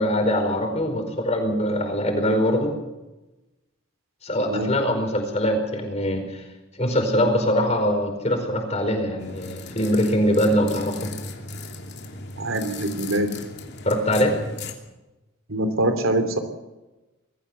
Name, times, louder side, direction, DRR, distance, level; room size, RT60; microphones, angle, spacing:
voice 1, 0.0-2.7 4.2-6.4 6.8-11.1 13.8-14.4, equal, 30° left, 4 dB, 4.8 m, -23 dB
sound 1, 9.2-14.7, left 3 dB, 55° left, 2.8 m, -37 dB
voice 2, 12.4-13.3 15.5-16.4, right 1 dB, 85° right, 8 dB, 3.0 m, -24 dB
22.5 x 14.5 x 8.1 m, 1.1 s
head